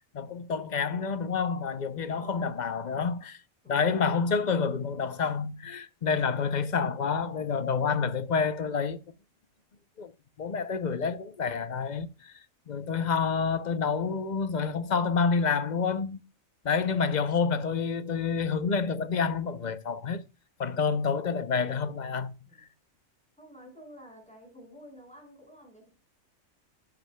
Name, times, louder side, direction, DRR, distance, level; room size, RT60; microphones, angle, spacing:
voice 1, 0.1-3.4 3.7-9.0 10.0-10.1 10.4-12.3 12.7-16.2 16.6-20.2 20.6-22.4, left 5 dB, 45° left, 0.7 m, -28 dB
voice 2, 1.9-2.5 3.6-4.2 22.4-22.7 23.4-25.9, equal, 5° left, 5.4 m, -51 dB
11.0 x 10.5 x 2.2 m
omnidirectional pair, 1.4 m